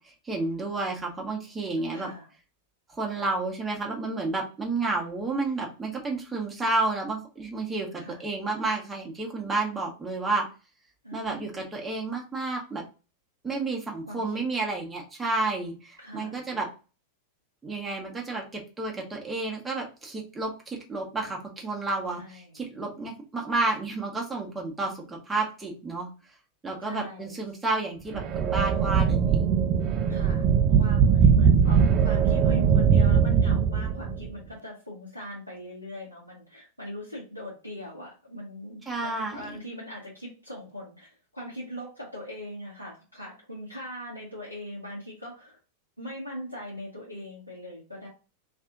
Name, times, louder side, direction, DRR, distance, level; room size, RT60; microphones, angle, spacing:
voice 1, 0.0-2.1 2.9-10.5 11.1-12.8 13.4-16.7 17.6-26.1 26.6-29.5 38.9-39.5, right 3 dB, 10° right, -1 dB, 1.0 m, -31 dB
voice 2, 1.9-2.3 8.0-8.2 11.0-11.6 14.1-14.4 16.0-16.4 22.1-22.6 26.8-27.4 30.1-30.4 30.7-45.6 46.0-48.1, equal, 90° left, -6 dB, 0.9 m, -40 dB
sound 1, 28.1-34.3, right 7 dB, 35° right, 0.3 m, -21 dB
2.7 x 2.5 x 3.6 m, 0.34 s
figure-of-eight pair, 90°, 0 cm